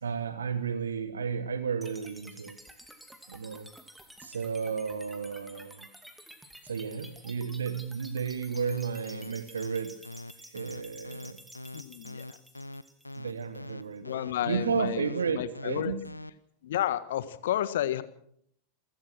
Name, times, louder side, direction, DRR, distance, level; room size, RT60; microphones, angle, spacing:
voice 1, 0.0-2.6 3.3-3.7 4.2-5.9 6.6-10.0 10.4-11.4 13.2-16.0, right 6 dB, 70° right, 13 dB, 1.3 m, -33 dB
sound 1, 1.8-13.8, right 1 dB, 5° right, 2.4 m, -51 dB
sound 2, 8.5-16.3, left 2 dB, 85° left, 0.8 m, -42 dB
voice 2, 11.7-12.2 14.0-15.9 16.6-18.0, left 12 dB, 60° left, 14 dB, 1.5 m, -31 dB
27.5 x 16.0 x 6.1 m, 0.68 s
figure-of-eight pair, 90°, 0 cm